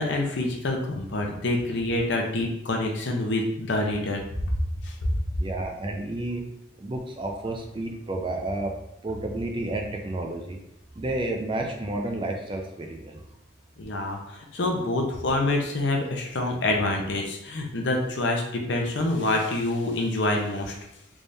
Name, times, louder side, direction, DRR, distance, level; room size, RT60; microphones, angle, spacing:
voice 1, 0.0-4.2 4.8-4.9 13.8-14.2 14.5-20.8, left 2 dB, 70° left, 1 dB, 0.7 m, -26 dB
voice 2, 5.4-6.4 6.8-10.6 11.0-13.2, right 2 dB, 25° right, 2 dB, 0.4 m, -31 dB
3.5 x 3.3 x 2.6 m, 0.81 s
head